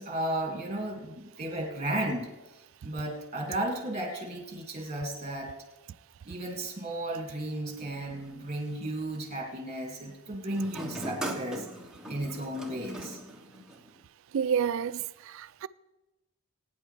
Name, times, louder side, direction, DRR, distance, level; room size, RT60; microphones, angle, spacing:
voice 1, 0.0-2.3 2.8-5.5 6.2-11.7 12.1-13.2, right 1 dB, 30° right, 2.3 m, -34 dB
sound 1, 7.8-9.1 10.5-14.0, right 1 dB, 5° right, 1.1 m, -40 dB
voice 2, 14.3-15.7, right 7 dB, 65° right, 0.4 m, -29 dB
21.0 x 9.3 x 3.3 m
head